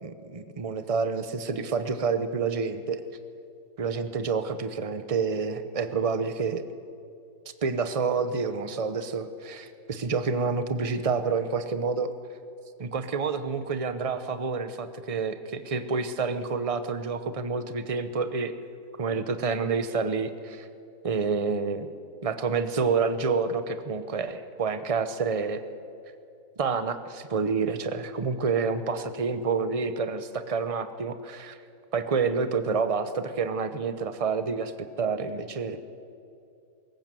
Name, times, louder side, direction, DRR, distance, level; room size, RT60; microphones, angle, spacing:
voice 1, 0.0-3.0 3.8-6.6 7.6-12.1 12.8-18.5 19.0-20.7 21.0-21.9 22.2-25.6 26.6-31.6 31.9-35.8, right 5 dB, 45° right, 11 dB, 0.4 m, -28 dB
21.0 x 18.5 x 7.6 m, 2.6 s
omnidirectional pair, 2.0 m